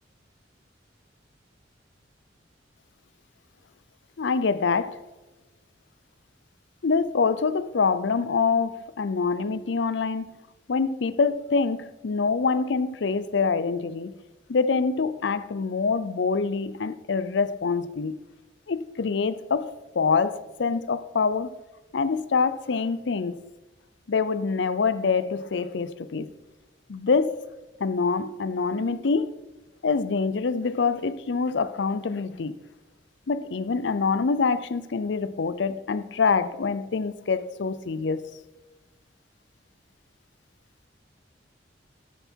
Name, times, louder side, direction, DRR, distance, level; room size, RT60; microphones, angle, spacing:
voice 1, 4.2-5.0 6.8-10.3 10.7-14.2 14.5-18.2 18.7-21.5 21.9-23.4 24.1-26.3 26.9-27.4 27.8-29.4 29.8-32.6 33.3-38.3, left 5 dB, 70° left, 0.5 m, -25 dB
12.5 x 7.2 x 4.5 m
head